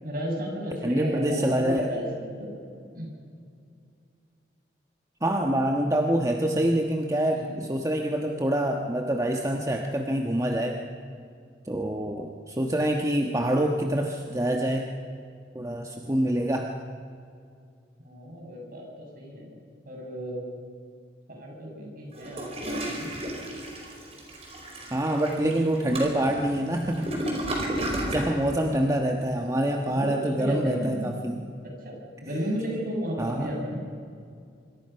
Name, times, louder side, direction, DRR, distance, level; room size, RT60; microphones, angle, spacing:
voice 1, 0.0-2.5 2.9-3.1 7.3-7.6 18.0-19.5 19.8-20.5 21.3-23.1 28.5-28.9 29.9-31.0 31.6-32.0 32.2-33.8, equal, 50° right, 0 dB, 6.7 m, -33 dB
voice 2, 0.8-1.9 5.2-10.8 11.7-14.9 15.5-16.7 24.9-27.1 27.9-31.4 33.2-33.5, right 1 dB, 20° right, 2 dB, 1.3 m, -26 dB
Toilet flush, 22.1-28.3, right 1 dB, 35° right, 4.9 m, -33 dB
26.0 x 25.0 x 5.7 m, 2.3 s
head